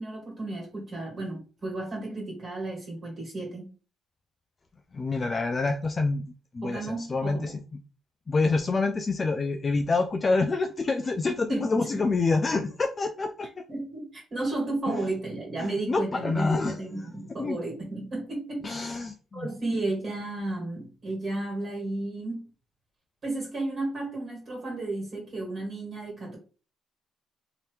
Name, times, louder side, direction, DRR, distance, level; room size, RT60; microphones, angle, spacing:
voice 1, 0.0-3.7 6.6-7.5 11.5-12.0 13.7-19.0 19.3-22.5 23.2-26.4, right 2 dB, 45° right, 1.8 m, -33 dB
voice 2, 4.9-6.3 6.5-7.6 8.3-13.5 14.9-15.0 15.9-16.8 17.4-17.6 18.6-19.5, left 3 dB, 35° left, 0.3 m, -27 dB
2.9 x 2.8 x 3.2 m
cardioid pair, 90°, 0 cm